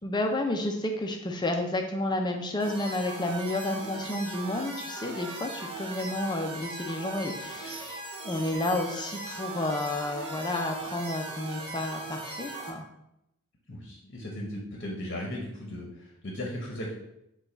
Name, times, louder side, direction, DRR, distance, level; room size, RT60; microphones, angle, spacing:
voice 1, 0.0-12.8, left 1 dB, 20° left, 4 dB, 0.5 m, -31 dB
sound 1, 2.6-12.7, right 3 dB, 25° right, 0.7 m, -39 dB
voice 2, 13.7-16.9, left 1 dB, 45° left, -2 dB, 0.8 m, -37 dB
5.5 x 2.3 x 4.0 m, 0.83 s
head